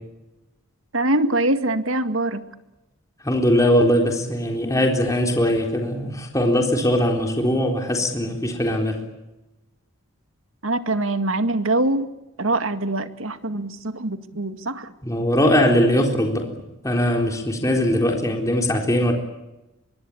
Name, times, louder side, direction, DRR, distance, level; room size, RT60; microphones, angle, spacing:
voice 1, 0.9-2.4 10.6-12.1 12.4-14.9, right 2 dB, 75° right, 9 dB, 2.1 m, -23 dB
voice 2, 3.2-9.0 15.0-16.5 16.8-19.1, equal, 15° left, 2 dB, 4.0 m, -20 dB
24.0 x 23.0 x 8.7 m, 0.96 s
head